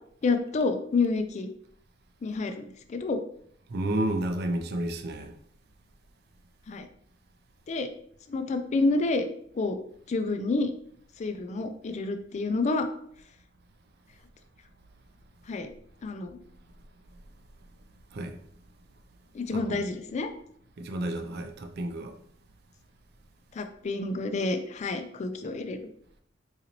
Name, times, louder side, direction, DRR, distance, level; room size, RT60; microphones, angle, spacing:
voice 1, 0.2-1.5 2.2-3.2 6.7-6.9 7.7-7.9 8.3-9.2 9.5-9.8 10.1-10.7 11.2-12.9 15.5-15.7 16.0-16.4 19.3-20.3 23.5-25.8, left 3 dB, 35° left, 0.3 m, -29 dB
voice 2, 3.7-5.3 18.1-18.4 19.5-19.8 20.8-22.2, right 1 dB, 55° right, 0.4 m, -31 dB
4.0 x 2.6 x 2.9 m
head